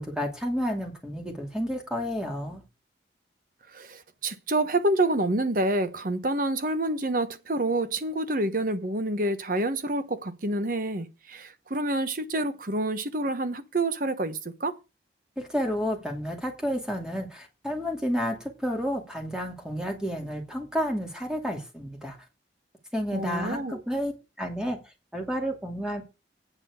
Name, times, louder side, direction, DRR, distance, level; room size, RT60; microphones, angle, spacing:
voice 1, 0.0-2.6 15.4-22.2 22.9-24.1 24.4-24.8 25.1-26.0, equal, 5° right, 2.4 m, -30 dB
voice 2, 3.7-14.8 23.1-23.8, right 2 dB, 50° right, 1.1 m, -28 dB
9.1 x 6.0 x 6.5 m
head